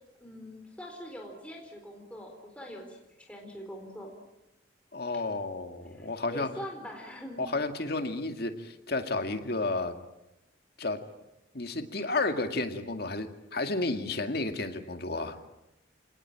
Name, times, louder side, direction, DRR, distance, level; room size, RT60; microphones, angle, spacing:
voice 1, 0.2-4.1 5.8-7.4 15.3-15.4, equal, 5° left, 1 dB, 4.1 m, -43 dB
voice 2, 4.9-6.5 7.4-9.9 10.8-11.0 11.5-15.4, left 2 dB, 50° left, 6 dB, 2.2 m, -32 dB
27.5 x 19.5 x 8.9 m, 0.92 s
head